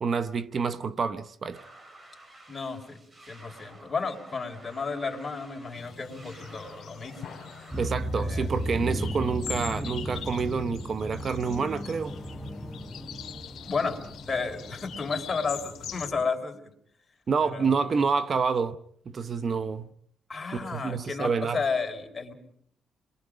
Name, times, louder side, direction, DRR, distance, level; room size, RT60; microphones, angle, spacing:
voice 1, 0.0-1.6 7.8-12.2 17.3-18.8 19.1-19.9 20.5-21.6, right 5 dB, 45° right, 0.9 m, -28 dB
sound 1, 1.5-7.9, right 2 dB, 30° right, 4.5 m, -51 dB
voice 2, 2.5-3.0 3.3-7.4 8.1-8.5 13.7-14.0 14.3-16.7 17.4-17.9 20.3-22.3, left 4 dB, 30° left, 4.3 m, -32 dB
sound 2, 5.7-16.1, left 9 dB, 65° left, 2.5 m, -43 dB
sound 3, 7.7-16.2, equal, ahead, 0.9 m, -35 dB
29.5 x 22.5 x 5.1 m
cardioid pair, 90°, 0 cm